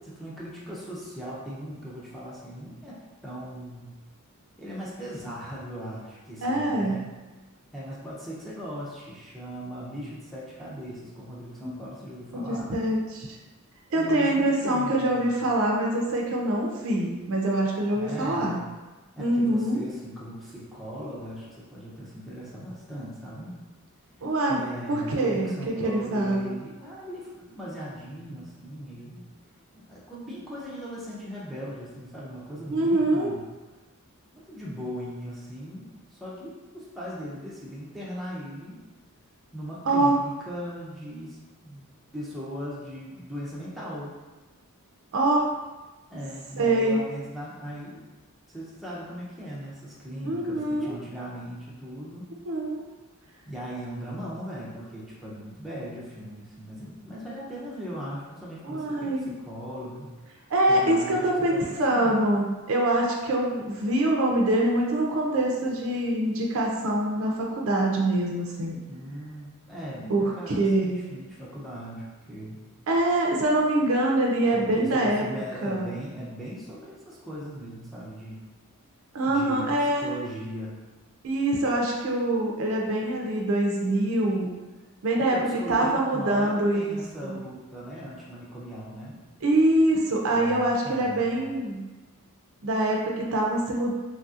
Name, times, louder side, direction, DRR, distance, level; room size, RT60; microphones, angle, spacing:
voice 1, 0.0-3.9 4.6-7.1 7.7-12.7 13.9-15.3 17.9-18.6 19.2-23.6 24.5-29.3 29.7-33.4 34.3-38.8 39.5-41.4 41.6-44.1 46.1-48.0 48.5-52.3 53.5-60.4 60.7-62.2 68.9-72.6 74.5-78.4 79.2-80.8 85.2-89.2 90.3-91.5, equal, ahead, -8 dB, 0.5 m, -39 dB
voice 2, 6.4-7.0 11.6-11.8 12.3-13.4 13.9-18.6 19.2-19.8 24.2-24.6 24.9-26.5 32.7-33.3 39.9-40.1 45.1-45.5 46.6-47.0 50.2-51.0 52.4-52.8 58.6-59.3 60.5-68.8 70.1-71.0 72.9-75.2 75.6-75.9 79.1-80.1 81.2-84.6 85.0-85.4 85.7-87.4 89.4-91.9 92.6-93.9, right 1 dB, 65° right, -1 dB, 0.4 m, -24 dB
3.1 x 2.6 x 2.4 m, 1.2 s
head